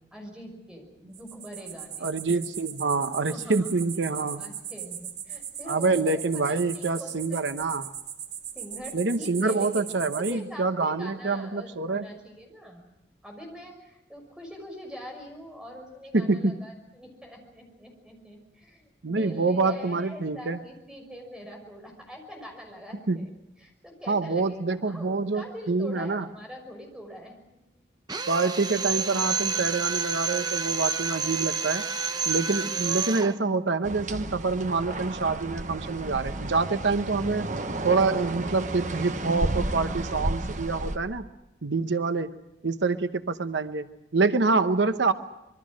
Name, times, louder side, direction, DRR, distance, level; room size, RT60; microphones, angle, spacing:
voice 1, 0.0-2.1 3.3-3.7 4.4-6.2 6.5-7.6 8.5-12.8 13.2-23.3 23.6-27.6, equal, 5° right, 2 dB, 5.8 m, -43 dB
sound 1, 1.1-10.3, right 9 dB, 65° right, 2.5 m, -39 dB
voice 2, 2.0-4.4 5.7-7.9 8.9-12.0 16.1-16.5 19.0-20.6 23.1-23.2 24.1-26.2 28.3-31.9 32.3-37.5 37.8-41.3 41.6-42.4 42.6-45.1, right 3 dB, 85° right, 10 dB, 0.9 m, -26 dB
Drill, 28.1-33.4, right 5 dB, 25° right, 0.8 m, -29 dB
sound 2, 33.8-41.0, right 1 dB, 45° right, 1.1 m, -32 dB
26.5 x 22.5 x 6.3 m, 0.91 s
head